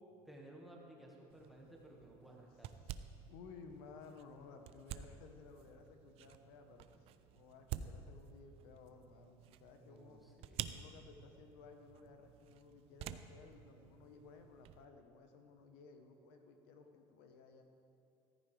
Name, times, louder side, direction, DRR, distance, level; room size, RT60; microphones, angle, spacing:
voice 1, 0.2-2.8 6.9-7.0 9.8-10.6, right 1 dB, ahead, -2 dB, 1.8 m, -57 dB
sound 1, 1.3-14.9, right 10 dB, 55° right, 0.5 m, -51 dB
voice 2, 3.3-10.2 10.7-17.6, left 5 dB, 85° left, 5 dB, 1.2 m, -57 dB
14.0 x 14.0 x 3.4 m, 2.6 s
cardioid pair, 145°, 12 cm